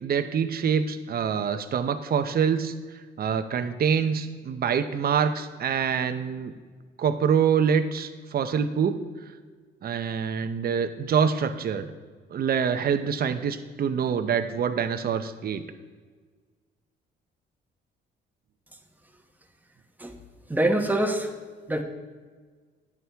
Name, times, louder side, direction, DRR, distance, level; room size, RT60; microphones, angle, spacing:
voice 1, 0.0-2.7 3.2-6.5 7.0-9.0 9.8-11.9 12.3-15.6, right 7 dB, 50° right, 9 dB, 0.7 m, -25 dB
voice 2, 20.5-21.3 21.7-21.8, right 1 dB, 10° right, 5 dB, 1.1 m, -24 dB
9.7 x 9.5 x 3.5 m, 1.5 s
cardioid pair, 90°, 20 cm